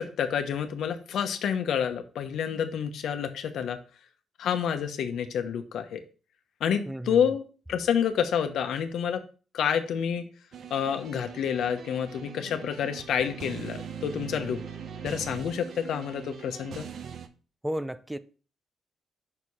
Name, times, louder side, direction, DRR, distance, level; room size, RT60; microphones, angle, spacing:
voice 1, 0.0-3.8 4.4-6.0 6.6-9.2 9.5-10.2 10.7-14.6 15.0-16.9, left 8 dB, 70° left, 1.0 m, -28 dB
voice 2, 6.9-7.2 17.6-18.2, equal, 5° right, 0.4 m, -33 dB
sound 1, 10.5-17.3, right 7 dB, 60° right, 0.9 m, -41 dB
5.9 x 4.8 x 5.4 m
cardioid pair, 140°, 0 cm